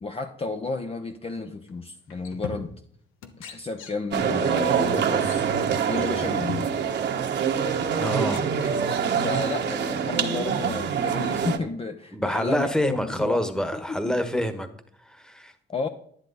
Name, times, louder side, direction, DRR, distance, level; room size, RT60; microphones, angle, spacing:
voice 1, 0.0-2.7 3.4-5.5 5.9-6.7 9.2-13.4 13.7-14.2 15.7-15.9, left 3 dB, 30° left, 6 dB, 0.7 m, -32 dB
sound 1, 1.7-1.8 2.1-3.0 3.2-4.3 4.6-4.7 5.2-5.4 5.7-6.9 7.6-7.7 8.1-9.4, left 6 dB, 90° left, 1.2 m, -41 dB
sound 2, 4.1-11.6, right 7 dB, 60° right, 1.2 m, -25 dB
voice 2, 8.0-8.5 12.1-14.7 15.0-15.5, equal, 5° left, 9 dB, 1.3 m, -27 dB
10.5 x 10.5 x 4.1 m, 0.63 s
cardioid pair, 90°, 20 cm